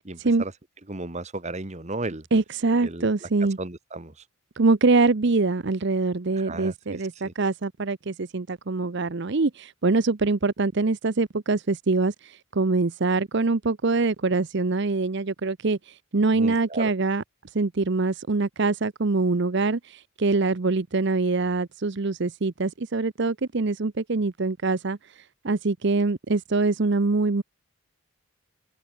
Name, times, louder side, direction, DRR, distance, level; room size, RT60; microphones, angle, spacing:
voice 1, 0.0-0.5 0.9-2.2 2.8-3.3 3.6-4.1 6.3-7.0 7.2-7.3 16.3-16.9, right 2 dB, 30° right, 1.5 m, -34 dB
voice 2, 2.3-3.6 4.6-17.2 17.5-27.4, right 3 dB, 55° right, 0.7 m, -24 dB
head